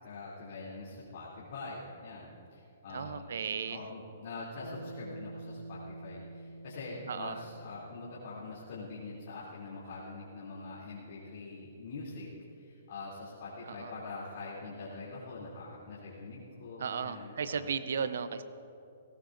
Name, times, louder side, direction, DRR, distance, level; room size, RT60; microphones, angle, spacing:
voice 1, 0.0-3.3 3.7-12.3 12.6-17.7, left 3 dB, 60° left, -8 dB, 2.8 m, -44 dB
voice 2, 2.9-3.9 7.1-7.4 13.6-13.9 16.8-18.4, right 6 dB, 70° right, 13 dB, 0.6 m, -35 dB
Bass guitar, 4.6-9.0, right 2 dB, 90° right, 1.1 m, -48 dB
19.5 x 17.5 x 2.6 m, 2.7 s
hypercardioid pair, 135°, 0 cm